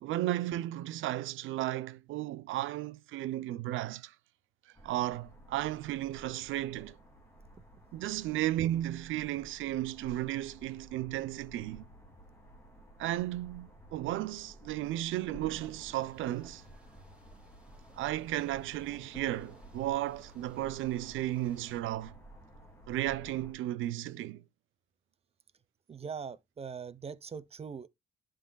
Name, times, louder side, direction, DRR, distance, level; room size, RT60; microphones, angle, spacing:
voice 1, 0.0-4.1 4.8-6.9 7.9-11.8 13.0-16.6 18.0-22.2 22.9-24.4, right 14 dB, 80° right, 0.5 m, -34 dB
sound 1, 4.7-23.5, right 1 dB, 10° left, 2.4 m, -54 dB
sound 2, 15.5-21.8, equal, 5° right, 2.3 m, -63 dB
voice 2, 25.9-27.9, right 6 dB, 30° right, 0.7 m, -41 dB
11.5 x 3.9 x 2.2 m
cardioid pair, 90°, 20 cm